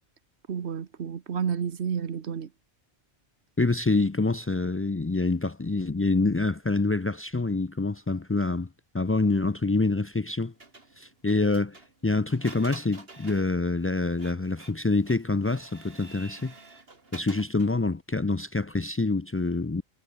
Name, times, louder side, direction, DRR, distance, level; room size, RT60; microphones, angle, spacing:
voice 1, 0.5-2.5, right 7 dB, 85° right, 1.4 m, -30 dB
voice 2, 3.6-8.7 8.9-10.5 11.0-16.5 17.1-19.8, left 3 dB, 20° left, 0.4 m, -26 dB
Printer, 10.6-17.8, right 3 dB, 60° right, 3.1 m, -49 dB
omnidirectional pair, 1.1 m